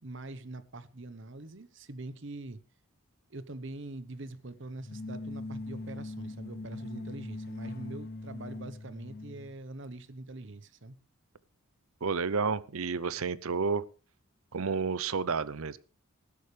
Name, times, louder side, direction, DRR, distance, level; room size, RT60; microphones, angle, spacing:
voice 1, 0.0-2.6 3.3-11.0, right 2 dB, 55° right, 1.0 m, -44 dB
sound 1, 4.8-9.5, left 2 dB, 45° left, 0.8 m, -41 dB
voice 2, 12.0-13.8 14.5-15.8, right 5 dB, 75° right, 0.7 m, -30 dB
19.0 x 11.5 x 3.3 m
head